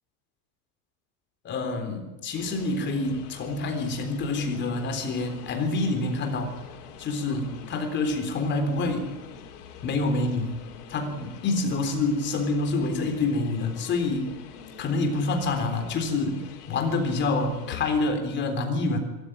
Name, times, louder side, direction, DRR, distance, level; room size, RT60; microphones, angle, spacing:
voice 1, 1.4-6.5 7.0-9.1 9.8-10.5 10.9-14.3 14.8-16.4 16.7-19.0, left 3 dB, 25° left, 5 dB, 3.7 m, -27 dB
sound 1, 2.3-18.0, left 7 dB, 90° left, 4.6 m, -45 dB
23.5 x 14.0 x 10.0 m, 1.2 s
supercardioid pair, 165°, 44 cm